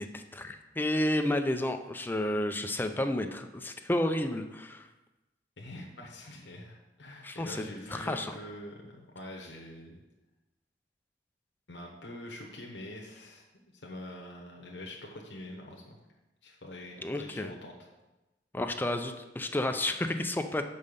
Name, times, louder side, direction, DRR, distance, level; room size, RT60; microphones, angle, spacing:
voice 1, 0.0-4.9 7.2-7.6 7.9-8.3 17.0-17.5 18.5-20.6, left 1 dB, 10° left, 6 dB, 0.4 m, -31 dB
voice 2, 5.6-10.0 11.7-16.0 16.4-17.7, left 1 dB, 85° left, 0 dB, 1.0 m, -45 dB
5.5 x 5.2 x 6.6 m, 1.1 s
head